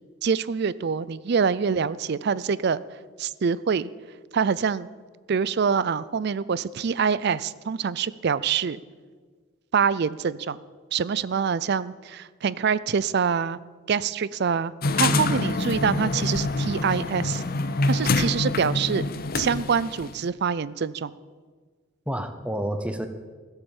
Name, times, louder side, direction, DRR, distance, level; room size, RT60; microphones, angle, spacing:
voice 1, 0.2-2.8 3.2-3.9 4.3-4.9 5.3-8.8 9.7-10.6 10.9-13.6 13.9-17.4 17.9-19.0 19.4-21.1, right 6 dB, 50° right, 18 dB, 0.4 m, -25 dB
sound 1, 14.8-20.1, left 2 dB, 45° left, 0.7 m, -26 dB
voice 2, 15.0-15.4 22.1-23.1, equal, 5° right, 9 dB, 0.8 m, -29 dB
16.5 x 8.2 x 7.2 m, 1.5 s
head